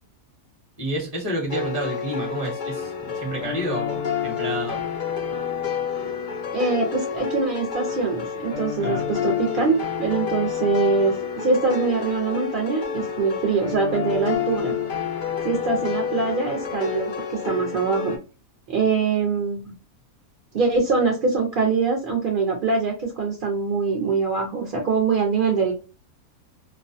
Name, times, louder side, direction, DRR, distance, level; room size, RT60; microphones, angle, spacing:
voice 1, 0.8-4.8 8.8-9.1, right 1 dB, 30° right, 0 dB, 0.8 m, -30 dB
sound 1, 1.5-18.2, left 7 dB, 90° left, 0.4 m, -29 dB
voice 2, 6.5-14.7 15.4-18.1 18.7-19.6 20.5-25.7, right 4 dB, 60° right, 0 dB, 0.5 m, -23 dB
2.4 x 2.2 x 2.5 m, 0.33 s
omnidirectional pair, 1.5 m